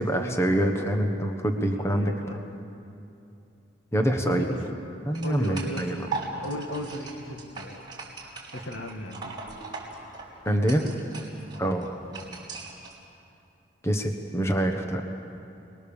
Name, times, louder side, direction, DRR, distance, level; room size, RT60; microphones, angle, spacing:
voice 1, 0.0-2.4 3.9-4.5 5.0-6.0 10.4-11.0 11.6-12.0 13.8-15.1, right 1 dB, 15° left, 4 dB, 1.3 m, -25 dB
voice 2, 1.8-2.5 4.2-4.6 5.2-7.8 8.5-9.4 11.5-11.7, equal, 75° left, 4 dB, 2.0 m, -36 dB
sound 1, 5.1-12.9, right 4 dB, 20° right, 4.9 m, -39 dB
28.5 x 21.0 x 7.2 m, 2.7 s
head